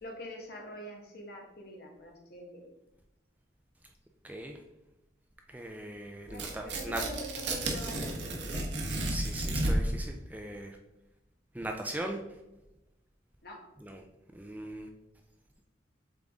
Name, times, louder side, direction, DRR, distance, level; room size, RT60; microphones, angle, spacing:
voice 1, 0.0-2.7 6.2-9.0 13.4-13.6, left 1 dB, 55° left, 0 dB, 1.4 m, -45 dB
voice 2, 4.2-4.6 5.5-7.1 9.1-10.8 11.5-12.2 13.8-14.0 14.3-14.9, right 1 dB, 10° right, 3 dB, 0.4 m, -39 dB
Tearing, 6.3-10.0, right 1 dB, 70° right, 1.2 m, -32 dB
7.5 x 3.7 x 3.6 m, 0.96 s
head